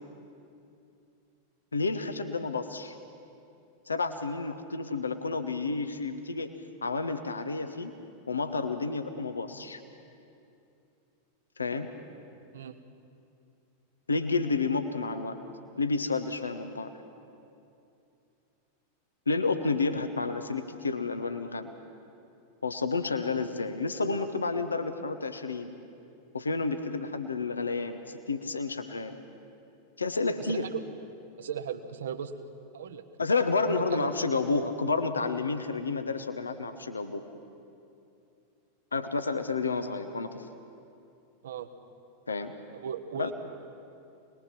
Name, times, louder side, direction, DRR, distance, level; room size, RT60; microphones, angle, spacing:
voice 1, 1.7-3.0 3.9-6.5 6.8-7.9 8.3-9.8 11.6-11.9 14.1-15.4 15.8-16.9 19.3-21.7 22.6-25.7 26.3-29.2 30.0-30.6 33.2-37.2 38.9-40.4 42.3-42.5 43.2-43.3, left 4 dB, 75° left, 8 dB, 1.0 m, -30 dB
voice 2, 30.5-30.8 31.4-32.3 32.7-33.0 33.6-34.1 41.4-41.7 42.7-43.3, right 9 dB, 60° right, 9 dB, 1.1 m, -36 dB
25.0 x 20.5 x 6.0 m, 2.6 s
figure-of-eight pair, 90°, 0 cm